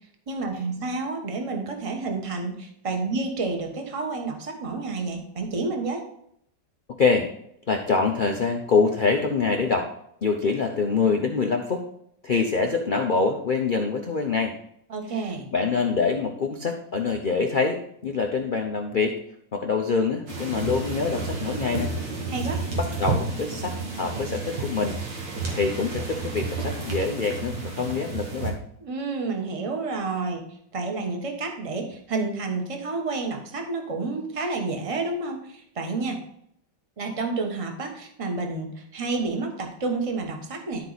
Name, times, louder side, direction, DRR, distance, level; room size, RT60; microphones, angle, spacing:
voice 1, 0.3-6.1 14.9-15.5 22.3-22.6 28.8-30.4 30.7-36.2 37.0-40.9, right 3 dB, 25° right, 3 dB, 1.0 m, -30 dB
voice 2, 7.0-7.3 7.7-9.9 10.2-11.8 12.2-14.6 15.1-19.2 19.5-21.9 22.7-25.0 25.5-28.6, left 4 dB, 75° left, 3 dB, 0.4 m, -25 dB
sound 1, 20.3-28.5, right 4 dB, 85° right, 2.6 m, -31 dB
12.0 x 4.7 x 4.0 m, 0.71 s
omnidirectional pair, 2.0 m